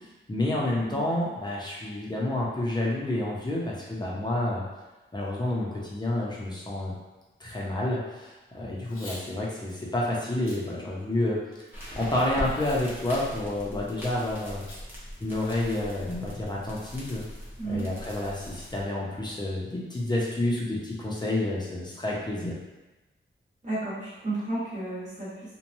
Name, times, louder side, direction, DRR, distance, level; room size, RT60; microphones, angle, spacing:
voice 1, 0.3-4.6 5.1-6.9 7.4-11.4 11.9-14.6 15.2-17.2 17.6-22.6, left 1 dB, 20° left, -5 dB, 0.7 m, -29 dB
voice 2, 8.6-9.0 17.6-17.9 23.6-25.6, right 2 dB, 35° right, -10 dB, 1.2 m, -33 dB
Packing tape duct tape / Tearing, 8.8-9.2 9.7-9.8 10.3-10.6 11.1-11.7 12.4-12.8 13.1-13.2 14.7-14.8 15.2-15.3 15.6-15.9, left 1 dB, 80° left, 0.8 m, -45 dB
sound 1, 11.7-18.8, equal, 10° right, 0.9 m, -40 dB
3.1 x 2.2 x 2.6 m, 1.1 s
wide cardioid pair, 115°, 21 cm